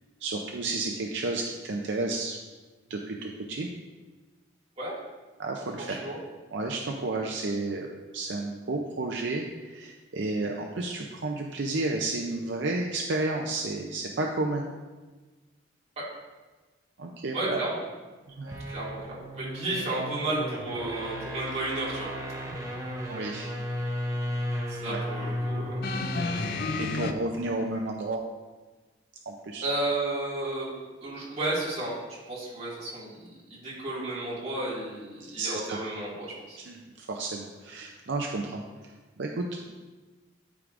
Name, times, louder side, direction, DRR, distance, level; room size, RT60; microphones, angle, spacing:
voice 1, 0.2-2.4 2.9-3.7 5.4-6.0 6.5-7.9 8.1-9.5 9.7-14.6 17.0-17.6 18.3-18.5 23.1-23.5 24.9-25.0 26.8-28.2 29.3-29.7 35.4-35.8 36.6-38.6 39.2-39.7, right 2 dB, 65° right, 1 dB, 0.5 m, -31 dB
voice 2, 5.9-6.2 17.3-17.8 18.7-22.2 24.7-25.8 29.6-33.4 33.6-36.6, right 2 dB, 30° right, -7 dB, 2.2 m, -32 dB
sound 1, 18.3-26.8, equal, 15° right, 0.8 m, -34 dB
sound 2, 25.8-27.1 28.1-28.2, left 4 dB, 50° left, 0.4 m, -31 dB
12.0 x 4.7 x 2.5 m, 1.3 s
head